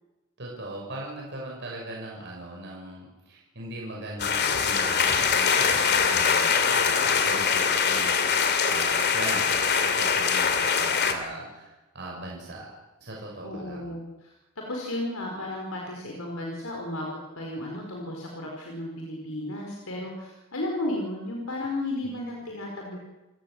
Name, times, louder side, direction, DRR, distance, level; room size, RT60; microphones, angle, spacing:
voice 1, 0.4-12.7 13.0-14.0 22.0-22.1, right 2 dB, 55° right, -3 dB, 6.3 m, -39 dB
sound 1, 4.2-11.1, left 6 dB, 50° left, 2.6 m, -23 dB
voice 2, 13.4-14.3 14.7-17.1 17.4-23.0, left 1 dB, 85° left, 0 dB, 4.7 m, -33 dB
29.0 x 17.0 x 7.8 m, 1.1 s
head